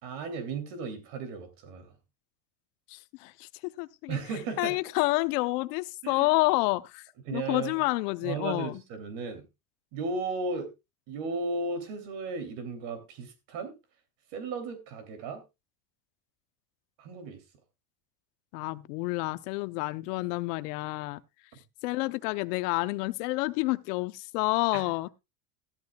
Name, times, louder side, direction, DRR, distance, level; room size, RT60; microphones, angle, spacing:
voice 1, 0.0-1.9 4.1-4.8 6.0-6.3 7.2-7.7 8.2-9.5 9.9-10.7 11.1-13.7 14.3-15.4 17.0-17.4 24.7-24.8, right 4 dB, 60° right, 3.2 m, -35 dB
voice 2, 2.9-3.5 3.8-4.2 4.6-8.8 18.5-21.2 21.8-25.1, left 22 dB, 80° left, 0.9 m, -29 dB
13.5 x 12.5 x 2.3 m
supercardioid pair, 135°, 47 cm